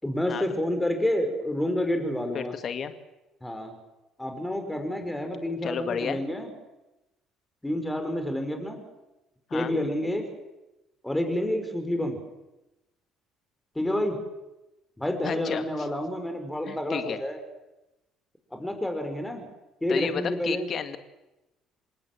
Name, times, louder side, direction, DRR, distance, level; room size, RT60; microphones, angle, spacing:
voice 1, 0.0-2.5 3.4-3.7 4.2-6.5 7.6-8.8 9.5-10.3 11.0-12.2 13.7-14.2 15.0-17.4 18.5-19.5 19.8-20.7, left 1 dB, 10° left, 6 dB, 4.9 m, -29 dB
voice 2, 2.3-2.9 5.6-6.2 9.5-9.7 15.2-15.9 16.7-17.2 19.9-21.0, left 7 dB, 45° left, 9 dB, 2.1 m, -32 dB
27.5 x 18.0 x 7.7 m, 0.99 s
figure-of-eight pair, 50°, 0 cm